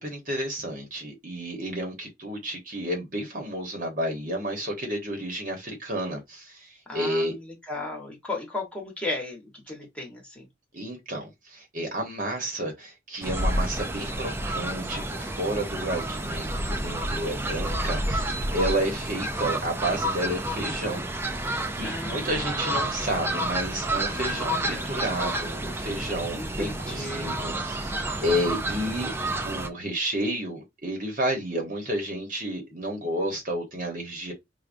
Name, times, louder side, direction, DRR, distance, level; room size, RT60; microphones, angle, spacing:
voice 1, 0.0-7.4 10.7-21.1 21.8-29.1 29.4-34.3, right 1 dB, 45° right, 1.0 m, -31 dB
voice 2, 6.9-10.4 21.8-22.6 24.3-24.9 26.3-27.3, left 2 dB, 5° left, 1.1 m, -36 dB
Fowl, 13.2-29.7, right 1 dB, 10° right, 0.3 m, -30 dB
4.7 x 2.3 x 2.5 m
head